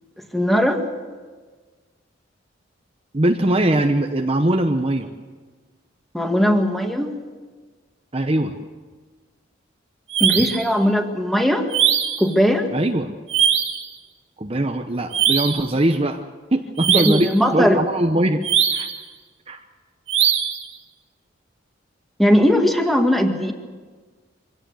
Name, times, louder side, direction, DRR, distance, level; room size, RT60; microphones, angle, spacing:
voice 1, 0.3-0.8 6.1-7.1 10.2-11.7 12.2-12.7 17.0-17.8 22.2-23.5, equal, ahead, 3 dB, 2.0 m, -18 dB
voice 2, 3.1-5.1 8.1-8.5 12.7-13.1 14.4-16.2 16.5-18.4 18.7-18.9 19.5-19.6, right 1 dB, 30° right, 4 dB, 0.9 m, -21 dB
sound 1, 10.1-10.7 11.7-12.3 13.3-13.9 15.1-15.7 16.8-17.3 18.4-19.0 20.1-20.6, right 9 dB, 75° right, 1.9 m, -20 dB
24.5 x 17.0 x 7.8 m, 1.4 s
head